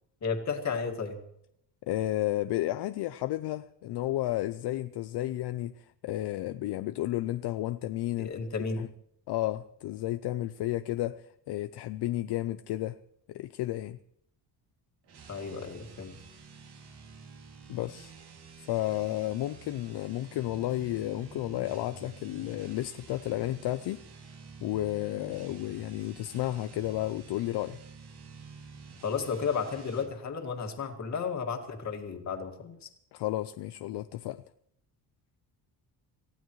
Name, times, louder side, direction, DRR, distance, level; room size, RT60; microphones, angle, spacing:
voice 1, 0.2-1.2 8.2-8.8 15.3-16.2 29.0-32.9, left 5 dB, 40° left, 2.1 m, -33 dB
voice 2, 1.9-8.3 8.7-8.9 9.3-13.0 13.3-14.0 17.7-18.1 18.7-24.0 24.6-27.8 33.1-34.4, left 15 dB, 70° left, 0.6 m, -32 dB
sound 1, 15.0-30.2, right 5 dB, 65° right, 2.7 m, -50 dB
27.5 x 15.5 x 3.2 m
cardioid pair, 175°, 42 cm